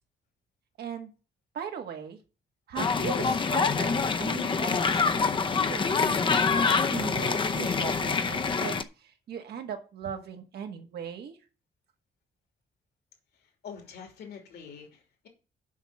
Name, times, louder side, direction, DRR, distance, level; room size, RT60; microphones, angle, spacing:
voice 1, 0.8-1.1 1.5-2.2 2.7-6.2 6.5-11.4, right 7 dB, 75° right, 1.7 m, -39 dB
sound 1, 2.8-8.8, left 5 dB, 30° left, 0.7 m, -26 dB
voice 2, 13.6-15.3, left 6 dB, 80° left, 2.9 m, -45 dB
7.2 x 5.8 x 7.4 m
cardioid pair, 140°, 17 cm